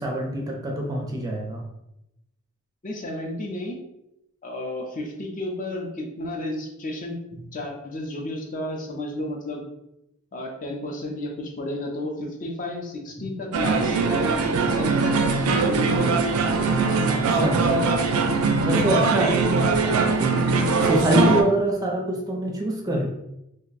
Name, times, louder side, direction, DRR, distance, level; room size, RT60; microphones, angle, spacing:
voice 1, 0.0-1.6 13.2-13.3 17.1-18.3 18.6-23.1, right 1 dB, 20° right, 0 dB, 0.4 m, -25 dB
voice 2, 2.8-3.8 4.4-7.2 7.5-9.6 10.3-16.2, left 1 dB, 40° left, 1 dB, 0.6 m, -32 dB
sound 1, 13.5-21.4, right 4 dB, 85° right, 0.4 m, -21 dB
2.6 x 2.1 x 3.9 m, 0.85 s
head